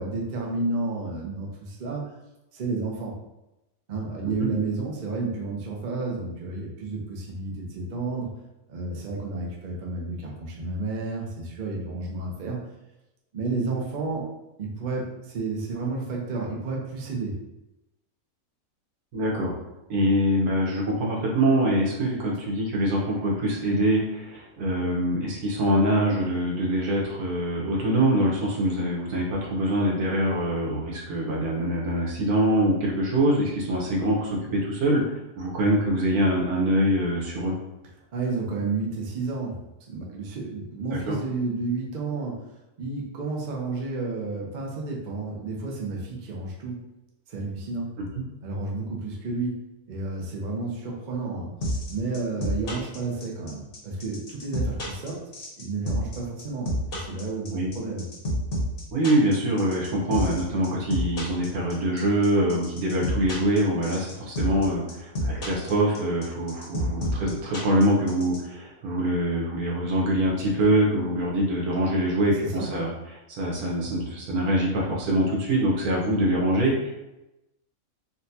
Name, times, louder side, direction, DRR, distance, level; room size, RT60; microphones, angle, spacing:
voice 1, 0.0-2.0 2.5-3.1 3.9-8.3 8.7-12.7 13.3-14.3 14.6-17.4 38.1-39.6 39.9-42.4 42.8-46.9 47.3-47.9 48.4-49.6 49.9-51.5 51.9-55.2 55.6-58.0 72.4-72.7, right 3 dB, 55° right, -2 dB, 0.5 m, -31 dB
voice 2, 19.1-19.5 19.9-35.0 35.4-37.5 40.9-41.2 48.0-48.2 57.5-57.7 58.9-72.9 73.4-76.9, right 1 dB, 90° right, -3 dB, 1.4 m, -24 dB
sound 1, 51.6-68.4, equal, 45° left, 0.9 m, -29 dB
4.1 x 2.2 x 2.7 m, 0.94 s
omnidirectional pair, 1.5 m